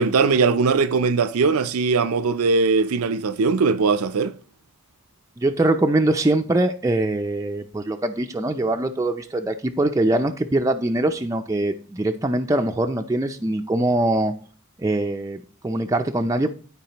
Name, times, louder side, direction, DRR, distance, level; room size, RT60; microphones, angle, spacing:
voice 1, 0.0-4.3, right 4 dB, 90° right, 0.5 m, -20 dB
voice 2, 5.4-14.3 14.8-16.5, right 2 dB, 15° right, 0.4 m, -22 dB
12.0 x 4.7 x 2.9 m
head